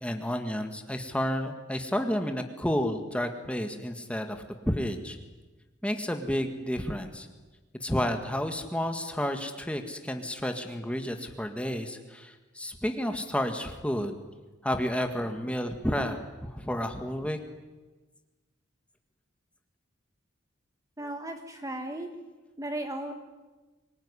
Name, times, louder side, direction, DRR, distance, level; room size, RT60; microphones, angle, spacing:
voice 1, 0.0-5.2 5.8-7.3 7.8-14.2 14.6-17.4, equal, 5° left, 5 dB, 1.8 m, -31 dB
voice 2, 21.0-22.1 22.6-23.1, right 1 dB, 15° right, 5 dB, 1.4 m, -35 dB
25.0 x 19.5 x 9.9 m, 1.2 s
head